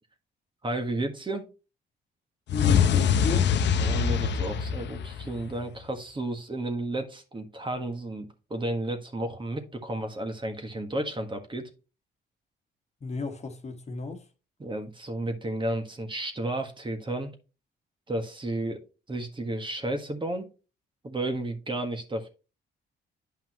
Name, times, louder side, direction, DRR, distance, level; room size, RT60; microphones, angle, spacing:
voice 1, 0.6-1.5 3.8-11.7 14.6-17.3 18.1-18.8 19.1-20.5 21.0-22.3, right 1 dB, 25° right, 1.6 m, -32 dB
sound 1, 2.5-5.6, left 7 dB, 65° left, 0.7 m, -24 dB
voice 2, 2.5-3.5 13.0-14.2, left 4 dB, 35° left, 1.5 m, -33 dB
9.4 x 5.6 x 3.0 m
cardioid pair, 90°, 20 cm